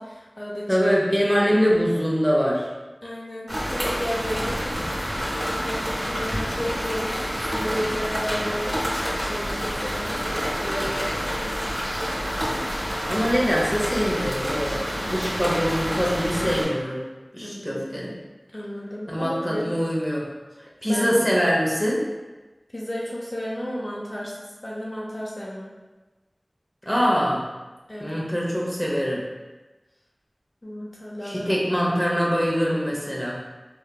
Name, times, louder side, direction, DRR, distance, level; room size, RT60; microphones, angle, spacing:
voice 1, 0.0-0.8 3.0-8.8 9.2-11.5 17.4-17.8 18.5-19.6 20.8-21.2 22.7-25.7 27.9-28.2 30.6-31.5, equal, 40° left, -5 dB, 0.5 m, -33 dB
voice 2, 0.7-2.7 13.1-17.0 17.3-18.1 19.1-20.3 20.8-22.0 26.9-27.4 28.0-29.3 31.2-33.4, equal, 5° right, -4 dB, 0.7 m, -23 dB
sound 1, 3.5-16.6, equal, 20° right, 1.3 m, -28 dB
3.3 x 2.8 x 2.2 m, 1.2 s
wide cardioid pair, 45°, 0 cm